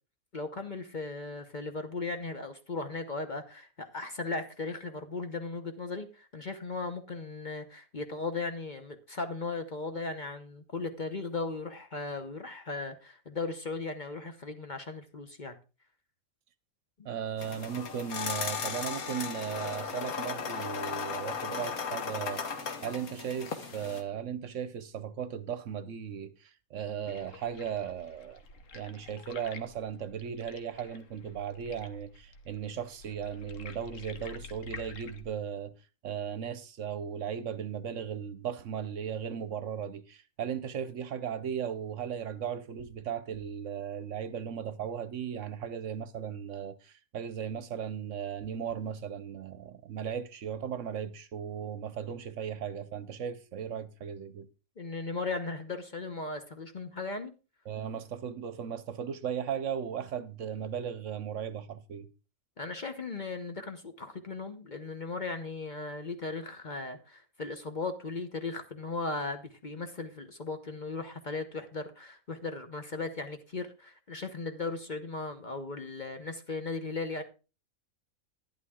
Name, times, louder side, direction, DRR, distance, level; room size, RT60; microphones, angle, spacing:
voice 1, 0.3-15.5 17.0-17.1 54.8-57.3 62.6-77.2, left 3 dB, 40° left, 0.9 m, -37 dB
voice 2, 17.0-28.4 28.7-35.7 36.0-54.5 57.7-62.1, right 8 dB, 65° right, 1.0 m, -37 dB
sound 1, 17.4-24.0, left 6 dB, 85° left, 1.7 m, -36 dB
sound 2, 27.0-35.2, left 5 dB, 65° left, 1.4 m, -49 dB
11.5 x 10.5 x 3.6 m
omnidirectional pair, 1.5 m